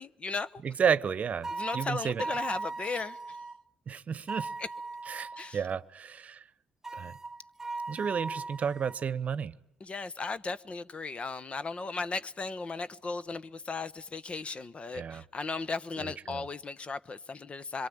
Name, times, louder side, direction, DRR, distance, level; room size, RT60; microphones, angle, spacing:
voice 1, 0.0-0.6 1.5-3.4 4.6-4.7 5.3-5.6 9.8-17.9, left 4 dB, 40° left, 1.0 m, -36 dB
voice 2, 0.6-1.5 1.7-2.2 3.9-4.5 5.1-6.4 6.9-7.1 7.9-9.5 14.9-15.2 16.0-16.4, right 7 dB, 50° right, 1.0 m, -32 dB
sound 1, 1.4-3.6 4.3-5.5 6.8-9.0, right 3 dB, 15° right, 1.1 m, -38 dB
26.0 x 22.5 x 8.9 m
supercardioid pair, 55°, 3 cm